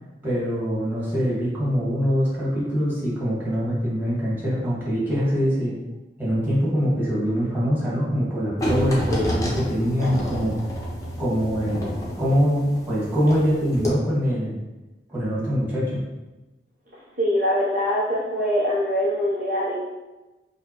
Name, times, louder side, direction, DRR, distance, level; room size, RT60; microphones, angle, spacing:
voice 1, 0.2-5.8 6.2-10.6 11.2-14.6 15.1-16.0, equal, 10° right, -9 dB, 1.5 m, -23 dB
sound 1, 8.6-13.5 13.7-13.9, equal, 20° left, 0.7 m, -28 dB
voice 2, 9.1-9.6 17.2-19.8, equal, 50° right, -7 dB, 0.7 m, -23 dB
4.8 x 2.1 x 2.9 m, 1.1 s
head